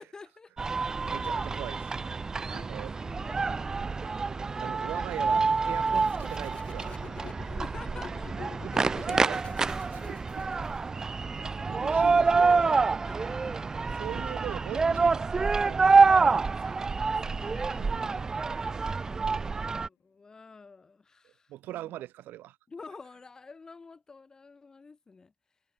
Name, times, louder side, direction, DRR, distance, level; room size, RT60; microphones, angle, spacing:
voice 1, 0.0-0.9 2.4-4.8 7.4-8.3 9.9-12.2 13.1-13.6 16.5-18.3 19.1-22.0 22.7-25.3, left 4 dB, 20° left, 4.3 m, -50 dB
sound 1, 0.6-19.9, right 4 dB, 20° right, 0.3 m, -27 dB
voice 2, 1.1-2.0 2.5-2.9 4.6-7.0 7.3-7.5 8.6-10.5 11.7-12.8 13.9-15.9 17.8-18.1 21.5-22.6, right 14 dB, 70° right, 0.7 m, -41 dB
sound 2, 5.8-10.8, left 7 dB, 35° left, 2.5 m, -46 dB
sound 3, 19.3-21.0, left 16 dB, 80° left, 4.8 m, -66 dB
cardioid pair, 155°, 3 cm